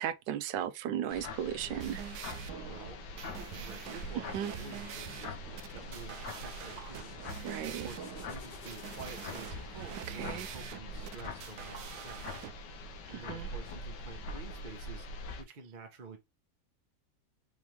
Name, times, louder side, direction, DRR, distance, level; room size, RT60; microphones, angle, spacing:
voice 1, 0.0-2.0 4.2-4.5 7.4-7.9 10.1-10.5 13.1-13.5, right 10 dB, 90° right, 1.3 m, -36 dB
sound 1, 1.1-15.4, left 2 dB, 80° left, 1.5 m, -44 dB
sound 2, 1.6-12.5, right 9 dB, 75° right, 1.1 m, -45 dB
voice 2, 2.7-7.2 7.6-8.0 8.3-12.5 13.1-15.1 15.4-16.2, right 4 dB, 35° right, 0.9 m, -49 dB
sound 3, 3.1-9.9, left 3 dB, 30° left, 1.1 m, -54 dB
5.0 x 3.5 x 3.0 m
omnidirectional pair, 1.9 m